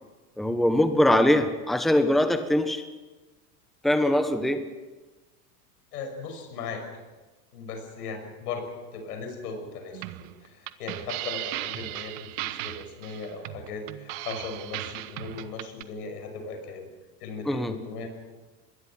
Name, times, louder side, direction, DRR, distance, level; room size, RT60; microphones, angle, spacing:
voice 1, 0.4-2.8 3.8-4.6 17.5-17.7, left 1 dB, ahead, 8 dB, 1.3 m, -22 dB
voice 2, 5.9-7.0 7.5-8.7 8.9-16.9 17.2-18.1, left 4 dB, 90° left, 5 dB, 6.1 m, -38 dB
sound 1, 9.9-15.8, right 17 dB, 60° right, 1.2 m, -36 dB
25.5 x 21.0 x 5.9 m, 1.2 s
supercardioid pair, 120°, 46 cm